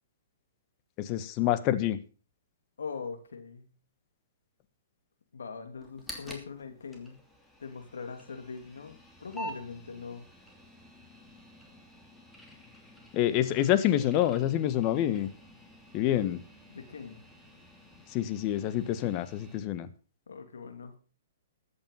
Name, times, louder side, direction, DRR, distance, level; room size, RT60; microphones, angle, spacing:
voice 1, 1.0-2.0 13.1-15.3 15.9-16.4 18.1-19.9, left 12 dB, 35° left, 13 dB, 1.3 m, -27 dB
voice 2, 2.8-3.7 5.3-7.2 7.6-10.3 16.1-16.3 16.7-17.2 20.3-21.0, left 5 dB, 85° left, 7 dB, 3.0 m, -42 dB
sound 1, 5.8-19.6, equal, 5° left, 2.9 m, -49 dB
13.5 x 8.7 x 5.7 m, 0.37 s
hypercardioid pair, 135°, 0 cm